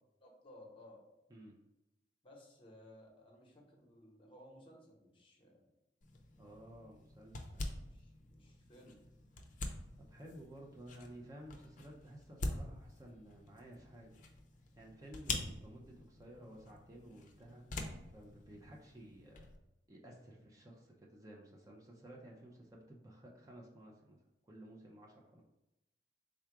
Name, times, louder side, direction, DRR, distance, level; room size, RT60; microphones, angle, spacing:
voice 1, 0.2-1.0 2.2-5.7 7.6-9.0, left 1 dB, 30° left, -1 dB, 0.9 m, -59 dB
sound 1, 6.0-19.6, left 2 dB, 45° left, 0.5 m, -46 dB
voice 2, 6.4-7.7 9.4-9.5 10.0-14.2 14.8-17.6 18.1-19.5 19.9-24.2 24.4-25.4, right 1 dB, 20° right, -1 dB, 0.5 m, -54 dB
3.7 x 2.3 x 4.5 m, 0.91 s
head